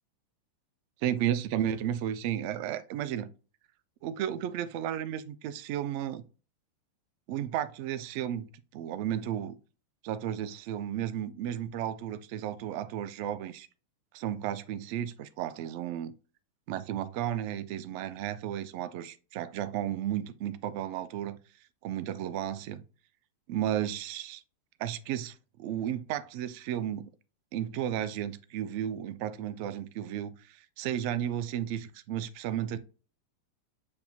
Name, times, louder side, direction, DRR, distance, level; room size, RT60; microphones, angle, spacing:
voice 1, 1.0-3.3 4.0-6.2 7.3-9.5 10.0-13.7 14.1-16.1 16.7-21.4 21.8-22.8 23.5-24.4 24.8-27.1 27.5-32.8, right 11 dB, 45° right, 0.3 m, -33 dB
6.3 x 2.7 x 2.6 m
figure-of-eight pair, 90°, 0 cm